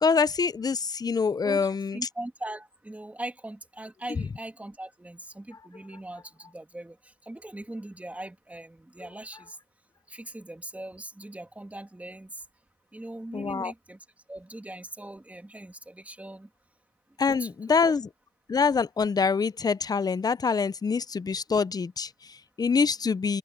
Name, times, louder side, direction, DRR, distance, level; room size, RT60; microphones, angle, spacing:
voice 1, 0.0-2.0 13.3-13.7 17.2-18.1 18.5-23.4, left 5 dB, 25° left, 0.6 m, -25 dB
voice 2, 1.4-9.6 10.1-12.4 12.9-14.0 14.3-16.5 17.3-17.8, right 1 dB, 10° right, 2.8 m, -40 dB
open air
cardioid pair, 120°, 17 cm